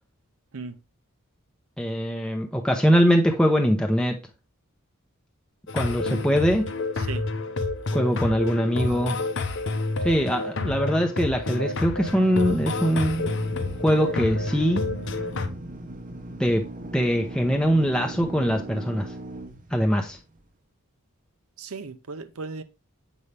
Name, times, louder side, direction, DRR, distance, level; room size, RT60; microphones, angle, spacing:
voice 1, 1.8-4.2 5.7-6.6 7.9-9.2 10.0-13.3 13.8-14.8 16.4-16.6 16.9-19.1 19.7-20.2, equal, 5° left, 0.6 m, -22 dB
sound 1, 5.7-15.5, left 2 dB, 60° left, 0.7 m, -29 dB
Drill, 11.8-20.4, right 1 dB, 40° right, 0.7 m, -39 dB
voice 2, 21.6-22.6, right 4 dB, 80° right, 0.7 m, -36 dB
7.1 x 5.4 x 3.3 m
head